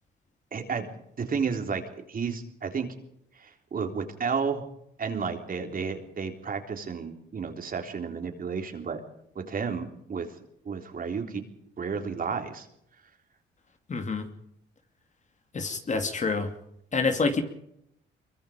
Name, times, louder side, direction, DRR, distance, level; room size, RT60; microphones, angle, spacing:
voice 1, 0.5-0.9 1.2-2.9 3.3-4.6 5.0-9.0 9.4-10.3 10.7-11.4 11.8-12.7, right 5 dB, 45° right, 4 dB, 3.7 m, -32 dB
voice 2, 13.9-14.3 15.5-16.5 16.9-17.4, left 4 dB, 35° left, 6 dB, 2.7 m, -27 dB
24.0 x 23.0 x 5.2 m, 0.75 s
cardioid pair, 90°, 20 cm